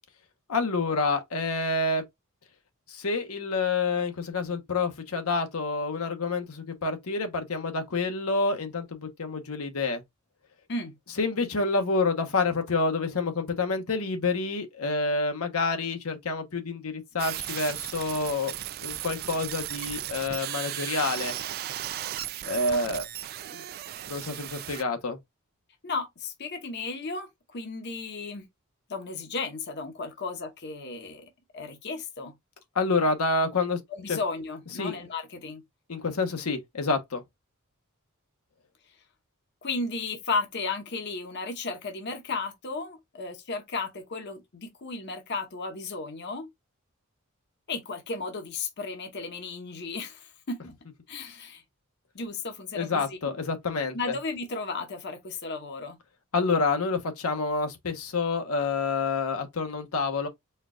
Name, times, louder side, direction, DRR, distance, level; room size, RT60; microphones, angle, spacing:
voice 1, 0.5-2.0 2.9-10.0 11.2-18.6 18.8-21.3 22.4-23.0 24.1-25.2 32.7-33.8 34.1-34.2 34.8-35.0 35.9-37.2 52.7-54.1 56.3-60.3, left 3 dB, 80° left, 0.9 m, -28 dB
sound 1, 17.2-24.8, right 12 dB, 45° right, 0.3 m, -36 dB
voice 2, 25.8-28.4 28.9-32.3 34.0-35.6 39.6-46.5 47.7-50.7 51.1-51.6 52.1-53.1 53.9-56.0, left 3 dB, 50° left, 0.8 m, -34 dB
4.4 x 2.3 x 3.6 m
head